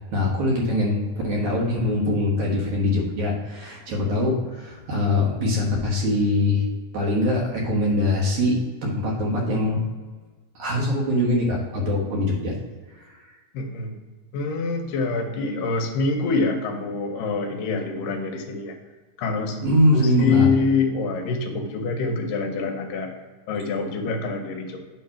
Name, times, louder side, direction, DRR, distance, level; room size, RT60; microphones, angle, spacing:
voice 1, 0.1-6.7 6.9-9.8 10.6-12.5 13.0-13.2 19.6-20.5, left 1 dB, 60° right, -3 dB, 2.5 m, -22 dB
voice 2, 13.5-14.0 14.3-18.8 19.2-23.1 23.5-24.8, left 4 dB, 75° left, 3 dB, 2.2 m, -25 dB
8.7 x 3.2 x 5.7 m, 1.4 s
omnidirectional pair, 4.2 m